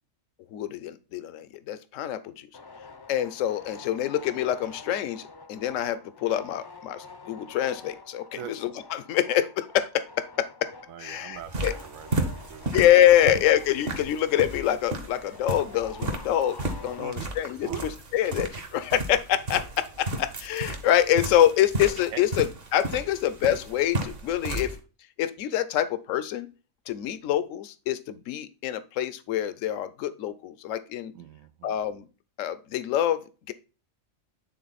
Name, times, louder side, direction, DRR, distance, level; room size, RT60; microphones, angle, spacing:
voice 1, 0.5-2.5 3.1-5.2 5.5-10.7 11.0-11.7 12.7-17.7 18.1-22.5 22.7-24.8 25.2-26.5 26.9-31.1 31.6-32.1 32.4-33.5, left 11 dB, 75° left, 14 dB, 1.0 m, -25 dB
sound 1, 2.5-17.5, left 3 dB, 30° left, 0.4 m, -47 dB
voice 2, 10.9-13.5 17.0-17.3 17.6-17.8 22.1-22.3 31.1-31.8, right 9 dB, 85° right, 12 dB, 1.1 m, -41 dB
sound 2, 11.4-24.8, right 1 dB, 50° right, 1.3 m, -34 dB
9.4 x 3.8 x 4.1 m, 0.34 s
omnidirectional pair, 1.4 m